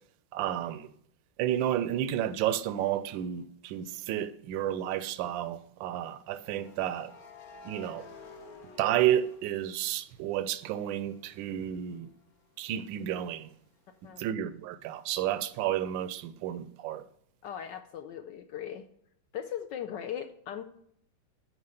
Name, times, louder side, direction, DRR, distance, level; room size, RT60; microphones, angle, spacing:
voice 1, 0.3-0.9 1.4-7.1 7.6-8.1 8.8-12.1 12.6-13.5 14.2-17.0, right 11 dB, 75° right, 1.2 m, -31 dB
sound 1, 3.1-3.3 6.4-10.3 10.7-14.3, left 4 dB, 55° left, 1.3 m, -53 dB
voice 2, 17.4-18.9 19.3-20.6, left 9 dB, 75° left, 1.1 m, -38 dB
8.7 x 4.8 x 5.6 m
omnidirectional pair, 2.3 m